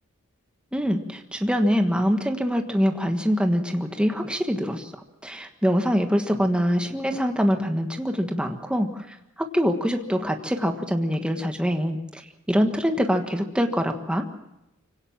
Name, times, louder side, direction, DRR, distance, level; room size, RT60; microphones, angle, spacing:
voice 1, 0.7-14.3, equal, 5° right, 5 dB, 1.5 m, -24 dB
24.5 x 18.0 x 7.4 m, 0.92 s
head